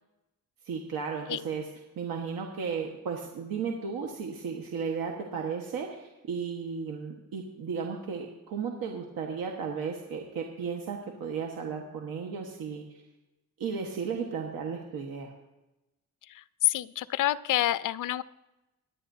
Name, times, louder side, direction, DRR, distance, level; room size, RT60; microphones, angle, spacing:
voice 1, 0.6-1.7 2.0-13.0 13.6-15.3, right 6 dB, 85° right, 1 dB, 1.4 m, -34 dB
voice 2, 16.3-18.2, left 13 dB, 65° left, 16 dB, 0.5 m, -28 dB
23.0 x 9.9 x 2.7 m, 0.99 s
cardioid pair, 95°, 34 cm